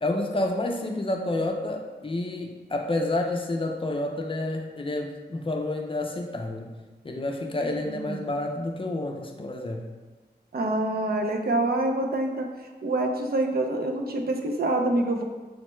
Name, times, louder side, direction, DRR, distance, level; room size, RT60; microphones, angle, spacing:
voice 1, 0.0-6.8 7.0-9.9, left 2 dB, 30° left, 2 dB, 0.4 m, -29 dB
voice 2, 7.9-8.2 10.5-12.5 12.8-15.2, right 2 dB, 65° right, 3 dB, 0.5 m, -26 dB
6.3 x 2.1 x 3.0 m, 1.2 s
wide cardioid pair, 115°, 17 cm